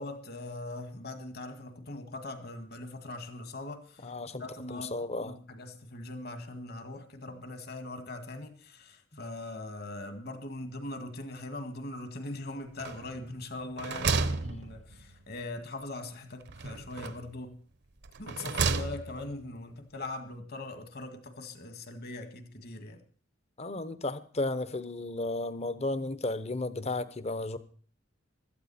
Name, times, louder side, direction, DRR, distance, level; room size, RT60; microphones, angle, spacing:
voice 1, 0.0-4.1 4.4-17.6 18.2-23.0, left 2 dB, 50° left, 1.9 m, -41 dB
voice 2, 4.0-4.4 4.7-5.4 23.6-27.6, left 2 dB, 35° left, 0.9 m, -33 dB
sound 1, 12.8-13.3 13.6-15.2 16.5-17.3 18.0-19.3, right 4 dB, 60° right, 0.9 m, -32 dB
16.5 x 13.0 x 4.3 m
head